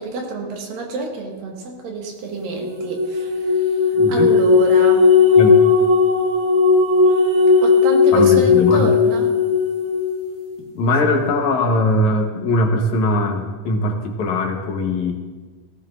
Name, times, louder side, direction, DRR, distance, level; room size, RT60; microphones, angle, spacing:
voice 1, 0.0-5.1 7.6-9.3, right 3 dB, 85° right, 0 dB, 3.5 m, -28 dB
sound 1, 2.5-10.4, left 5 dB, 70° right, 1.1 m, -16 dB
voice 2, 4.0-4.3 5.4-5.6 8.1-8.9 10.7-15.2, left 2 dB, 65° left, 3 dB, 2.3 m, -20 dB
18.0 x 14.5 x 2.5 m, 1.3 s
omnidirectional pair, 3.9 m